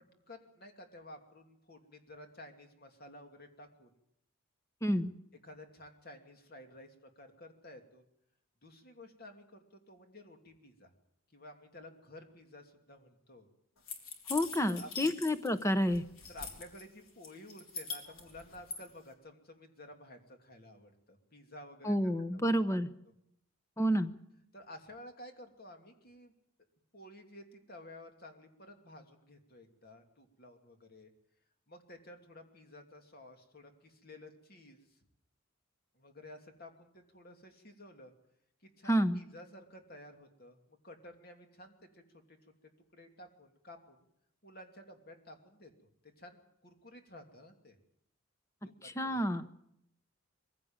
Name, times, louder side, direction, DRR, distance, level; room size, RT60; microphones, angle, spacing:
voice 1, 0.3-4.0 5.4-8.0 8.6-10.9 11.3-13.5 14.7-15.1 16.3-22.1 22.7-22.8 24.5-26.3 26.9-31.1 31.7-35.0 35.9-38.1 38.6-42.4 42.9-44.1 44.4-45.7 46.0-47.8 48.6-49.2, left 1 dB, 45° left, 4 dB, 2.8 m, -53 dB
voice 2, 4.8-5.1 14.3-16.0 21.8-22.9 23.8-24.1 38.9-39.2 48.8-49.5, equal, 15° left, 11 dB, 0.9 m, -29 dB
sound 1, 13.9-15.6 15.9-16.8 17.2-18.8, left 4 dB, 70° left, 3.9 m, -42 dB
22.5 x 16.0 x 8.9 m, 0.77 s
head